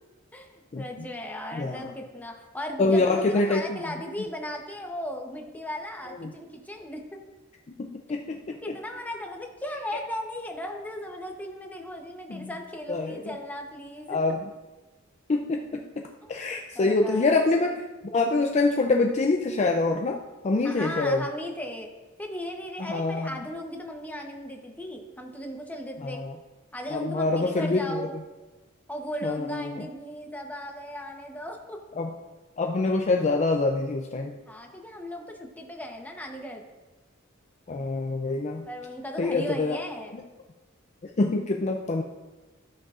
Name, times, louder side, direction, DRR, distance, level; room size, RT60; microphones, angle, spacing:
voice 1, 0.3-7.2 8.6-14.4 16.2-16.4 16.7-17.8 20.6-21.9 22.2-26.2 26.7-28.1 28.9-31.8 34.5-36.6 38.6-40.2, equal, 10° left, 2 dB, 0.9 m, -37 dB
voice 2, 1.5-1.9 2.8-3.8 6.2-6.3 7.8-8.6 12.3-12.5 12.9-13.2 14.1-14.5 15.3-16.0 16.3-17.8 18.1-21.2 22.8-23.3 26.0-26.3 26.9-28.0 29.2-29.9 32.0-32.1 32.6-34.3 37.7-38.6 39.2-39.8 40.1-40.2 41.2-42.0, left 3 dB, 35° left, 3 dB, 0.4 m, -25 dB
13.5 x 6.3 x 2.5 m, 1.2 s
head